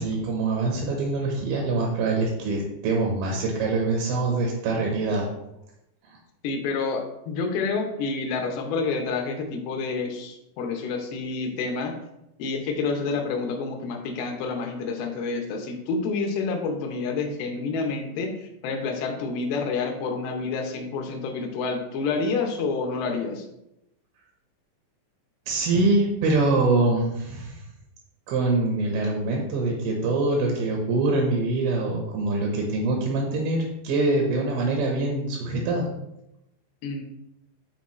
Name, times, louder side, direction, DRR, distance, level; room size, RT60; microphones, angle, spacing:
voice 1, 0.0-5.2 6.1-6.2 25.5-27.6 28.3-33.6 33.8-35.9, right 2 dB, 75° right, 0 dB, 2.5 m, -24 dB
voice 2, 6.4-11.9 12.4-23.5 36.8-37.0, left 4 dB, 75° left, 3 dB, 2.4 m, -28 dB
9.7 x 4.1 x 3.1 m, 0.86 s
omnidirectional pair, 5.2 m